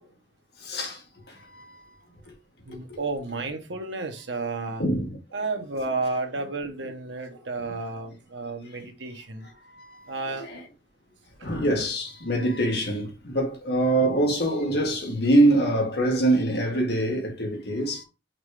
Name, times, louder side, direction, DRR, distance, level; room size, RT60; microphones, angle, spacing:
voice 1, 0.6-1.9 2.7-3.0 4.8-5.2 8.8-8.9 9.7-10.1 10.4-10.6 11.4-18.0, right 1 dB, 60° left, 2.0 m, -24 dB
voice 2, 2.6-4.8 5.3-9.5 10.1-10.5 11.4-11.5, right 3 dB, 80° right, 1.3 m, -32 dB
5.9 x 3.3 x 4.9 m
head